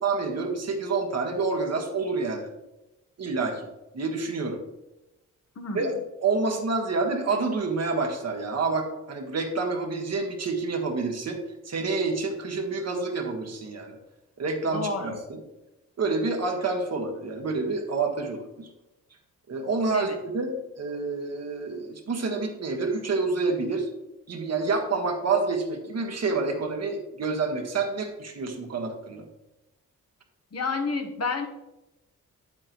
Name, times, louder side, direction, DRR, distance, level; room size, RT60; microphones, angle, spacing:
voice 1, 0.0-2.5 3.2-3.7 3.9-4.6 5.7-5.9 6.2-11.4 11.6-14.0 14.4-15.4 16.0-18.7 19.5-23.9 24.3-29.3, right 4 dB, 55° right, 3 dB, 1.6 m, -28 dB
voice 2, 5.6-6.0 14.7-15.2 19.9-20.2 30.5-31.5, left 4 dB, 55° left, 5 dB, 1.3 m, -30 dB
8.4 x 7.8 x 3.0 m, 0.97 s
cardioid pair, 75°, 31 cm